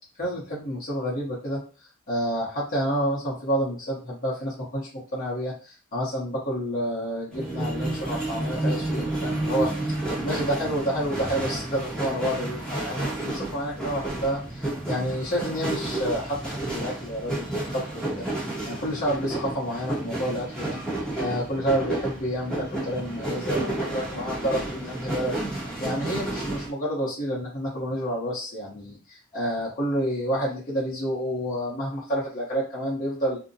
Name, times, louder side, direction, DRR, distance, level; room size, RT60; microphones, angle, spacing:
voice 1, 0.2-1.6 2.1-9.7 10.1-20.8 21.2-25.4 25.8-33.4, equal, 40° left, -6 dB, 0.8 m, -29 dB
sound 1, 7.3-26.7, right 2 dB, 5° left, 0.8 m, -31 dB
2.6 x 2.1 x 2.6 m, 0.36 s
head